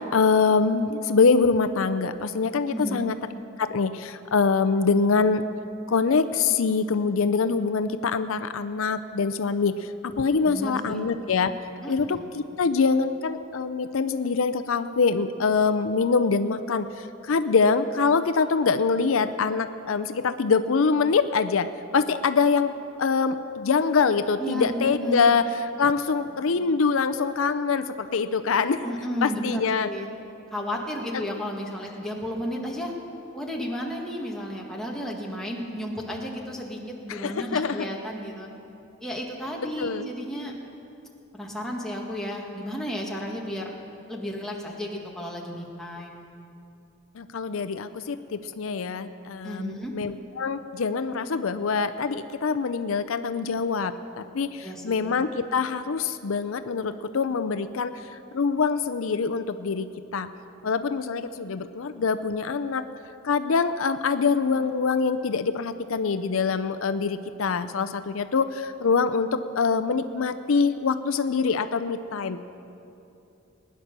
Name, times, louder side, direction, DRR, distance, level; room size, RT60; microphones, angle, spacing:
voice 1, 0.0-3.1 3.6-5.4 5.9-11.5 11.9-21.7 21.9-22.7 23.0-28.8 29.2-29.9 37.1-37.9 39.8-40.1 47.1-59.9 60.1-60.3 60.6-62.8 63.2-72.4, left 5 dB, 75° left, 10 dB, 0.5 m, -24 dB
voice 2, 2.7-3.1 10.4-11.0 11.8-12.3 24.4-25.4 28.8-30.1 30.5-32.9 33.3-38.5 39.0-40.5 41.3-43.7 44.1-46.2 49.4-49.9 54.6-55.0, equal, ahead, -2 dB, 1.7 m, -33 dB
20.5 x 10.0 x 6.7 m, 2.8 s
head